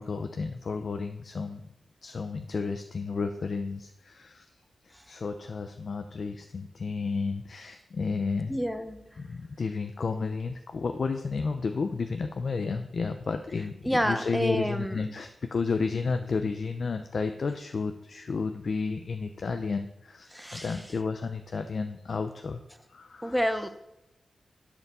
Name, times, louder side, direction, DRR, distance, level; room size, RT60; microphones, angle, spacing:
voice 1, 0.0-1.6 2.0-4.5 4.8-8.6 9.2-22.6 22.9-23.7, left 4 dB, 65° left, 7 dB, 0.6 m, -32 dB
voice 2, 8.5-9.0 13.8-15.1 20.3-20.8 23.2-23.7, equal, ahead, 9 dB, 1.0 m, -29 dB
11.0 x 5.0 x 6.9 m, 0.90 s
cardioid pair, 70°, 0 cm